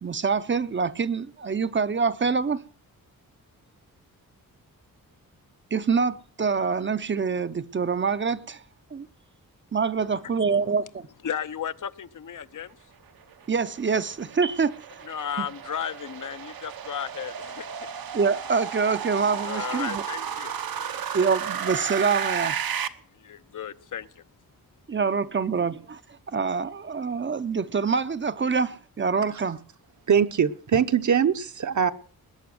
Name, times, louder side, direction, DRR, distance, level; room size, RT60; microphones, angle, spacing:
voice 1, 0.0-2.6 5.7-8.6 8.9-9.1 9.7-11.1 13.5-14.8 15.4-15.5 18.1-20.0 21.1-22.6 24.9-29.6, right 5 dB, 35° right, 0.7 m, -25 dB
voice 2, 11.2-12.8 15.1-17.7 19.4-20.5 20.8-20.9 23.1-24.2, left 8 dB, 60° left, 0.8 m, -34 dB
sound 1, 13.3-22.9, right 8 dB, 80° right, 1.2 m, -33 dB
voice 3, 30.1-31.9, right 7 dB, 55° right, 1.0 m, -22 dB
20.5 x 8.6 x 7.8 m
wide cardioid pair, 150°, 35 cm